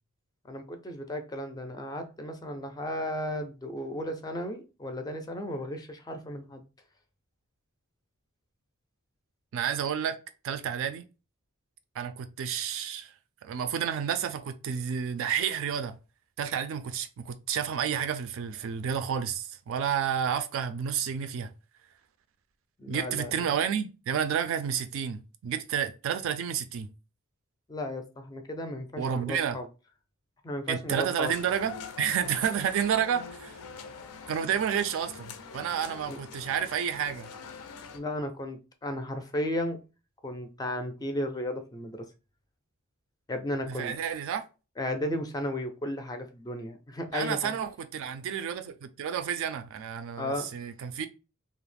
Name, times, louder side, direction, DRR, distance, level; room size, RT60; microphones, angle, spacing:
voice 1, 0.4-6.6 22.8-23.5 27.7-29.7 30.4-31.3 36.0-36.2 37.9-39.8 40.2-42.1 43.3-43.9 44.8-47.5 50.2-50.5, left 1 dB, 20° left, 0.4 m, -34 dB
voice 2, 9.5-10.2 10.4-11.0 11.9-13.1 13.4-16.0 16.4-21.5 22.9-26.9 29.0-29.6 30.7-33.6 34.3-37.3 43.7-44.5 47.1-51.1, right 8 dB, 65° right, 0.3 m, -30 dB
sound 1, 31.2-38.0, left 5 dB, 85° left, 0.4 m, -44 dB
2.4 x 2.0 x 3.2 m
head